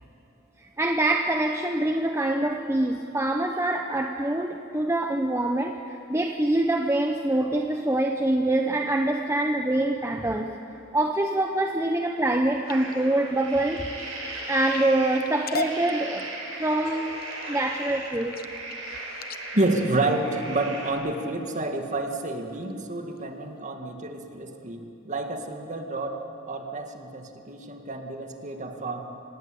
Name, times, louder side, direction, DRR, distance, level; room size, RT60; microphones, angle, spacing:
voice 1, 0.6-10.6 10.9-13.9 14.5-16.3 16.6-17.2 17.5-18.4, right 1 dB, 15° right, 3 dB, 0.9 m, -25 dB
sound 1, 12.3-21.0 21.6-21.9 22.3-22.7 23.2-23.3 23.6-23.7, left 3 dB, 45° left, 1.0 m, -40 dB
sound 2, 12.7-20.9, right 2 dB, 60° right, 7.5 m, -38 dB
voice 2, 19.5-29.0, right 2 dB, 35° right, 4 dB, 2.1 m, -29 dB
28.0 x 19.0 x 8.5 m, 3.0 s
head